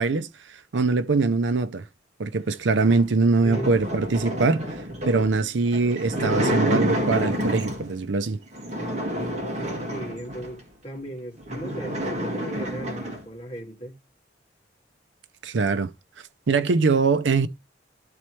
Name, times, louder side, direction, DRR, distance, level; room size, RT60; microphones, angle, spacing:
voice 1, 0.0-1.8 2.2-8.4 15.4-15.9 16.5-17.5, right 4 dB, 75° right, 0.6 m, -23 dB
sound 1, 2.8-8.0 8.5-10.6 11.1-11.2 11.4-13.2, equal, 35° right, 1.9 m, -28 dB
voice 2, 3.4-3.8 9.8-14.0, right 1 dB, 30° left, 2.1 m, -37 dB
12.5 x 4.3 x 3.1 m
head